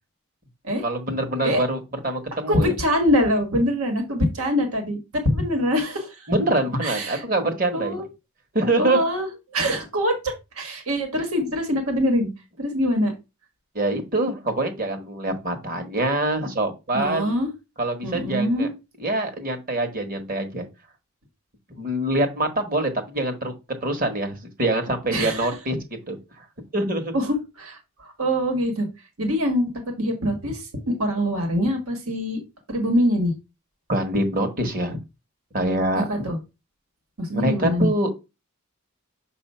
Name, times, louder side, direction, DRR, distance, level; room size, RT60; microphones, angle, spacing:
voice 1, 0.8-2.7 6.3-8.0 8.5-9.0 13.7-17.3 17.8-18.7 19.0-20.7 21.8-23.5 23.8-25.8 26.1-26.5 26.7-27.1 33.9-35.0 35.5-36.1 37.3-38.1, right 1 dB, 40° right, 6 dB, 1.3 m, -25 dB
voice 2, 2.5-6.3 6.8-7.2 7.7-8.0 8.8-9.3 9.5-12.3 12.6-13.1 16.9-17.5 18.0-18.7 25.1-25.5 27.1-28.9 29.2-29.7 30.0-32.4 32.7-33.3 35.9-36.4 37.2-37.9, equal, 80° right, 5 dB, 1.5 m, -24 dB
6.7 x 2.7 x 5.5 m, 0.25 s
head